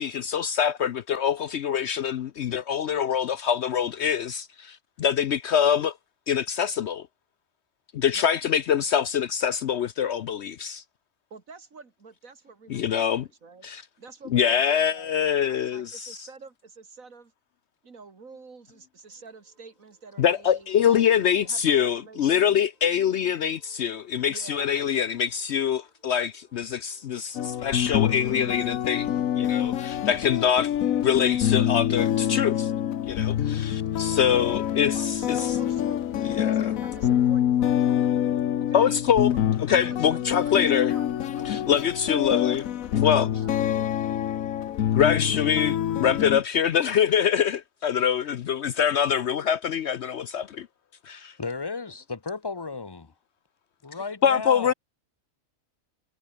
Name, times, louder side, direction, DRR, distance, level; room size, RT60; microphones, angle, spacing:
voice 1, 0.0-5.9 6.3-7.1 7.9-10.8 12.7-13.3 13.6-13.8 14.3-16.1 20.2-30.7 31.0-32.6 33.0-35.4 36.4-36.7 38.7-39.3 39.7-40.9 41.4-42.6 42.9-43.3 44.9-50.7 51.0-51.3 54.2-54.7, left 8 dB, 60° left, 0.8 m, -24 dB
voice 2, 11.3-13.7 14.0-17.3 17.8-22.6 24.3-24.7 34.9-36.0 36.4-38.1 38.6-38.9 39.3-42.4 42.9-43.6, right 4 dB, 80° right, 2.8 m, -48 dB
sound 1, 19.0-32.6 32.9-33.0 33.2-33.3, right 1 dB, 30° right, 7.8 m, -65 dB
sound 2, 27.3-46.4, left 10 dB, 80° left, 1.3 m, -26 dB
voice 3, 51.4-53.1 53.8-54.7, left 4 dB, 20° left, 0.8 m, -34 dB
omnidirectional pair, 1.4 m